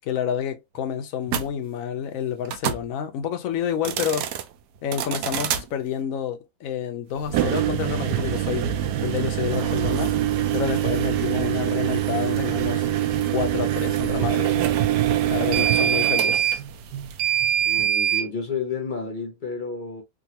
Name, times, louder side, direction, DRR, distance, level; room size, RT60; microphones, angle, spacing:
voice 1, 0.1-4.3 4.8-8.7 9.0-10.1 10.5-12.9 13.3-14.6 15.2-16.6, left 9 dB, 65° left, 0.8 m, -29 dB
sound 1, 1.3-1.4 2.5-2.8 3.7-4.4 4.9-5.6 7.2-18.3, right 11 dB, 75° right, 1.1 m, -24 dB
voice 2, 17.6-20.0, left 5 dB, 40° left, 0.7 m, -31 dB
3.7 x 2.3 x 2.8 m
omnidirectional pair, 2.0 m